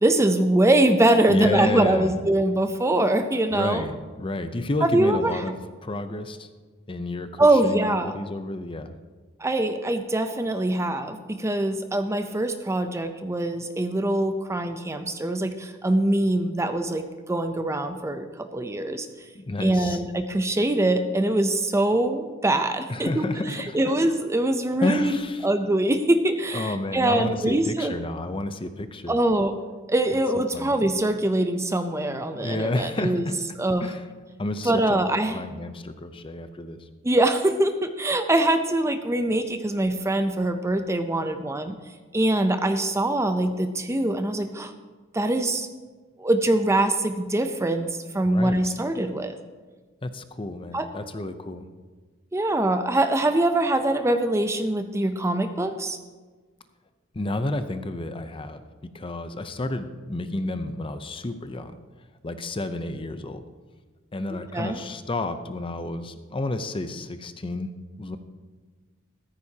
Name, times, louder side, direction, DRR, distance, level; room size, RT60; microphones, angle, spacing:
voice 1, 0.0-3.8 4.8-5.4 7.4-8.1 9.4-19.1 19.6-23.3 23.7-27.9 29.1-29.5 29.9-33.3 33.6-33.9 34.6-35.4 37.0-41.8 42.1-44.7 45.1-45.7 46.2-49.4 50.7-50.9 52.3-56.0 64.5-64.8, right 1 dB, 15° right, 8 dB, 0.5 m, -23 dB
voice 2, 1.3-2.1 3.5-6.5 6.9-9.0 19.3-20.0 22.9-23.9 24.8-25.5 26.5-29.2 30.5-30.7 32.3-33.4 33.8-34.0 34.4-35.0 35.3-36.9 48.2-48.7 50.0-51.7 57.1-58.6 58.9-61.8 62.2-63.4 64.1-67.7 68.0-68.2, left 2 dB, 25° left, 10 dB, 0.6 m, -30 dB
14.0 x 14.0 x 2.8 m, 1.4 s
head